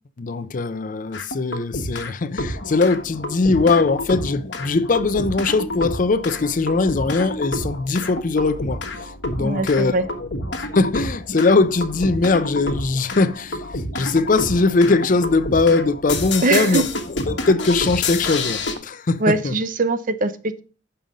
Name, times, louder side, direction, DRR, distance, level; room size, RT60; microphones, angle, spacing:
voice 1, 0.2-10.3 10.7-13.6 13.9-16.9 17.3-19.5, left 3 dB, 45° left, 0.5 m, -20 dB
sound 1, 1.1-2.1 2.4-18.7, left 2 dB, 75° left, 1.3 m, -29 dB
voice 2, 9.4-10.1 16.4-16.8 19.2-20.6, right 3 dB, 45° right, 0.6 m, -21 dB
7.4 x 5.5 x 5.3 m
head